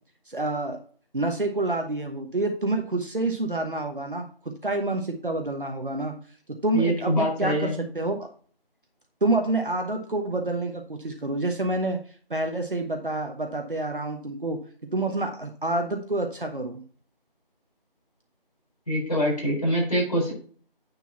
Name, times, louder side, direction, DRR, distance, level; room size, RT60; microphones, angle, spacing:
voice 1, 0.3-0.8 1.1-6.2 6.5-8.3 9.2-12.0 12.3-14.6 14.9-16.8, right 2 dB, 60° right, 4 dB, 1.1 m, -28 dB
voice 2, 6.7-7.7 18.9-20.3, equal, 40° left, -2 dB, 4.1 m, -24 dB
9.1 x 3.9 x 5.6 m, 0.43 s
figure-of-eight pair, 170°, 29 cm